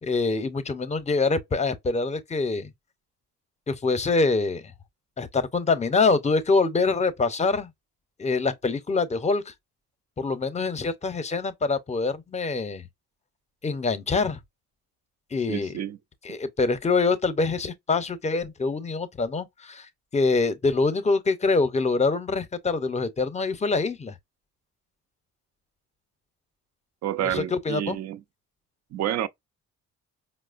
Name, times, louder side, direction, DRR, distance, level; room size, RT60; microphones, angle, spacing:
voice 1, 0.0-2.7 3.7-4.6 5.2-7.7 8.2-9.5 10.2-12.8 13.6-14.4 15.3-15.8 16.2-24.1 27.2-28.0, left 3 dB, 25° left, 0.6 m, -25 dB
voice 2, 15.5-16.0 27.0-28.2 28.9-29.3, right 11 dB, 60° right, 0.5 m, -29 dB
4.7 x 2.0 x 2.4 m
cardioid pair, 90°, 30 cm